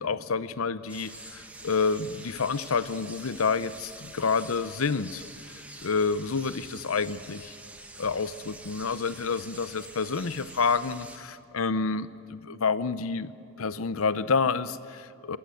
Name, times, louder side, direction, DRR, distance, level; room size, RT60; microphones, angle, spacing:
voice 1, 0.0-5.2 5.8-7.6 8.0-13.3 13.6-15.4, left 5 dB, 80° left, 15 dB, 0.7 m, -28 dB
sound 1, 0.9-11.2, right 2 dB, 5° right, 1.4 m, -46 dB
27.0 x 15.0 x 7.7 m, 2.5 s
head